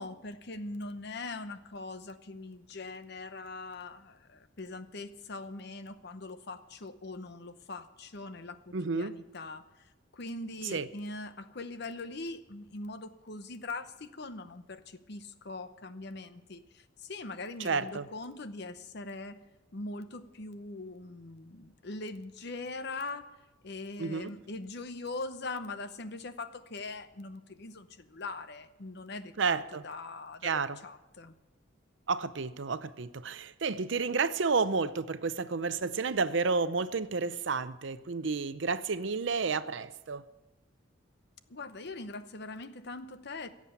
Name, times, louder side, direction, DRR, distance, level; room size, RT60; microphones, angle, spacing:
voice 1, 0.0-9.6 10.1-19.4 19.7-23.3 23.6-31.3 41.5-43.5, left 3 dB, 55° left, 11 dB, 0.8 m, -42 dB
voice 2, 8.7-9.1 10.7-10.9 17.6-18.1 24.0-24.3 29.4-29.8 30.4-30.8 32.1-40.2, right 4 dB, 65° right, 14 dB, 0.6 m, -31 dB
16.5 x 7.5 x 8.6 m, 1.0 s
head